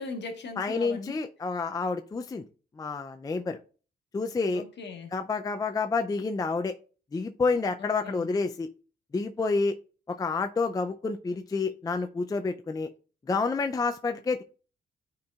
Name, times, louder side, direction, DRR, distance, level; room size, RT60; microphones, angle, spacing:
voice 1, 0.0-1.2 4.5-5.1 7.8-8.3, left 4 dB, 60° left, 1.4 m, -39 dB
voice 2, 0.6-2.4 2.8-3.6 4.1-4.6 5.1-6.8 7.1-8.7 9.1-9.8 10.1-12.9 13.3-14.4, left 4 dB, 20° left, 0.4 m, -29 dB
10.5 x 4.4 x 2.4 m
cardioid pair, 90°, 20 cm